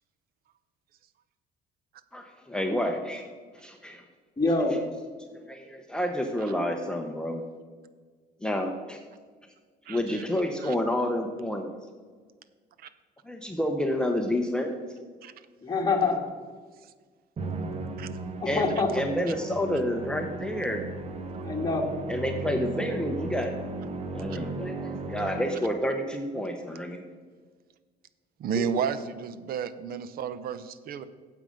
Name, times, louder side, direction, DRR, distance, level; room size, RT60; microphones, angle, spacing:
voice 1, 2.1-4.0 5.3-7.5 8.4-9.0 9.9-11.7 13.2-14.7 18.5-18.7 18.9-20.8 22.1-23.6 24.1-27.0, left 1 dB, 5° left, 3 dB, 0.8 m, -29 dB
voice 2, 4.4-4.8 15.6-16.3 18.4-18.9 21.4-21.8 28.6-28.7, left 3 dB, 20° left, 1 dB, 1.8 m, -25 dB
voice 3, 9.9-10.2 10.6-10.7 12.8-12.9 15.2-15.3 18.0-18.1 28.4-31.0, right 7 dB, 60° right, 14 dB, 0.7 m, -32 dB
Musical instrument, 17.4-25.9, right 2 dB, 40° right, 0.9 m, -36 dB
9.0 x 7.7 x 5.1 m, 1.5 s
cardioid pair, 110°, 17 cm